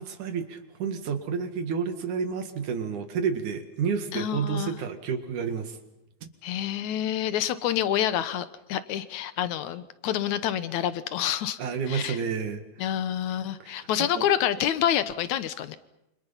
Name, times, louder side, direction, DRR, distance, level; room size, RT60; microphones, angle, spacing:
voice 1, 0.0-5.8 6.2-6.3 11.6-12.9 13.6-14.3, right 6 dB, 80° right, 7 dB, 3.4 m, -30 dB
voice 2, 4.1-4.7 6.4-11.6 11.9-12.2 12.8-15.8, left 10 dB, 75° left, 13 dB, 2.4 m, -28 dB
28.0 x 26.0 x 5.8 m, 0.87 s
omnidirectional pair, 3.4 m